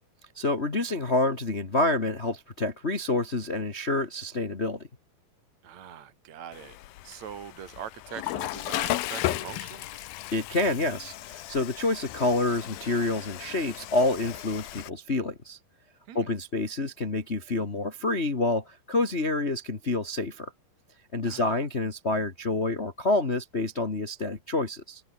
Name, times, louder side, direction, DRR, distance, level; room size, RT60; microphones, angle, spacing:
voice 1, 0.3-4.9 10.3-15.6 16.1-20.5 21.1-25.0, left 2 dB, 25° left, 1.5 m, -28 dB
voice 2, 5.6-6.8 7.0-10.1 16.1-16.3 21.3-21.7, right 9 dB, 55° right, 2.8 m, -42 dB
Water / Toilet flush, 6.5-14.9, left 16 dB, 85° left, 2.8 m, -35 dB
omnidirectional pair, 4.1 m